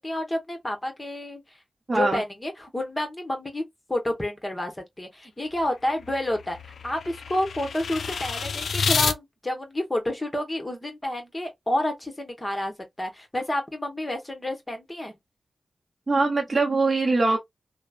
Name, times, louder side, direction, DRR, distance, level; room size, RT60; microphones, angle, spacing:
voice 1, 0.0-1.4 1.9-3.6 3.9-4.7 5.0-6.6 6.8-15.1, left 1 dB, 20° left, 1.1 m, -29 dB
voice 2, 1.9-2.2 16.1-17.4, right 3 dB, 40° right, 0.7 m, -22 dB
sound 1, 5.5-9.2, left 5 dB, 85° left, 0.3 m, -29 dB
3.1 x 2.1 x 2.3 m
cardioid pair, 65°, 0 cm